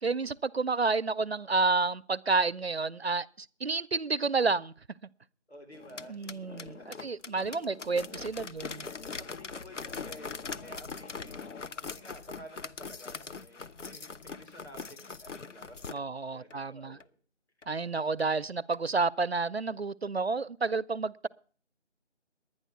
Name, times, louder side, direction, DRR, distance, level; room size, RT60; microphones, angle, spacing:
voice 1, 0.0-4.7 6.1-8.9 15.9-17.0 17.7-21.3, right 4 dB, 60° right, 0.5 m, -30 dB
voice 2, 5.5-6.9 7.4-7.6 9.0-17.1, equal, 65° left, 4.9 m, -52 dB
sound 1, 5.7-16.0 16.5-16.6 17.0-17.1 17.6-17.7 18.2-18.3 18.7-18.8, left 5 dB, 90° left, 0.8 m, -42 dB
11.0 x 9.9 x 8.1 m
figure-of-eight pair, 180°, 35 cm